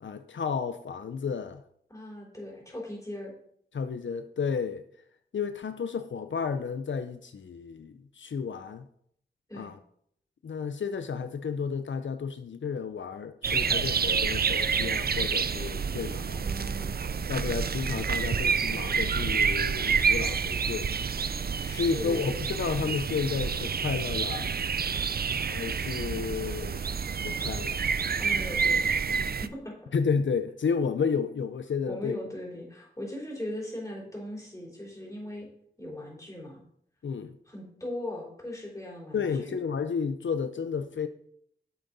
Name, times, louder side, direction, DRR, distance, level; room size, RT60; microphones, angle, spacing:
voice 1, 0.0-1.6 3.7-4.8 5.3-8.9 9.5-9.8 10.4-16.4 17.3-20.9 21.7-24.5 25.4-26.8 27.2-27.8 29.9-32.2 37.0-37.3 39.1-41.1, left 6 dB, 90° left, 0.6 m, -32 dB
voice 2, 1.9-3.3 9.5-9.7 16.4-17.2 18.2-18.6 21.6-22.4 28.2-29.7 31.9-35.5 35.8-36.6 37.5-39.6, left 1 dB, 15° left, 3.9 m, -39 dB
sound 1, 13.4-29.5, right 6 dB, 55° right, 0.4 m, -28 dB
8.6 x 7.9 x 4.0 m
wide cardioid pair, 80°, 19 cm